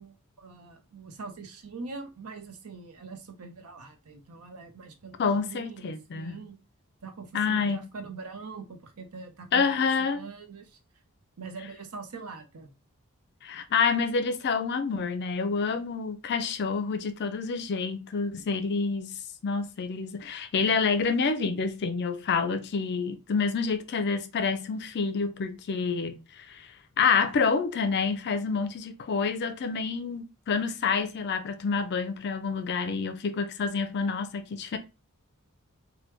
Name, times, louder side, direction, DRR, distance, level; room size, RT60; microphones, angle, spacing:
voice 1, 0.0-6.6 7.0-10.8 11.4-12.7, right 4 dB, 85° right, 0.7 m, -43 dB
voice 2, 5.2-6.4 7.3-7.9 9.5-10.2 13.4-19.2 19.4-26.2 26.5-26.6 27.0-34.8, left 5 dB, 50° left, 0.4 m, -28 dB
3.2 x 2.2 x 3.0 m
head